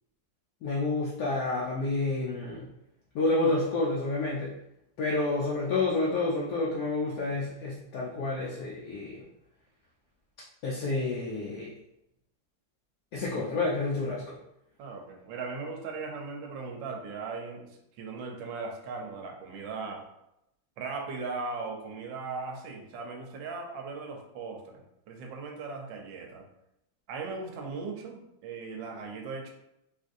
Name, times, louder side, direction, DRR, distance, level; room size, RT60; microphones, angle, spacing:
voice 1, 0.6-2.7 3.1-4.5 5.0-9.3 10.6-11.7 13.1-14.4, left 2 dB, 75° left, -4 dB, 0.9 m, -29 dB
voice 2, 14.8-17.7 17.9-20.1 20.8-26.5 27.1-29.5, right 4 dB, 75° right, 1 dB, 1.3 m, -38 dB
3.8 x 2.6 x 2.5 m, 0.84 s
omnidirectional pair, 2.2 m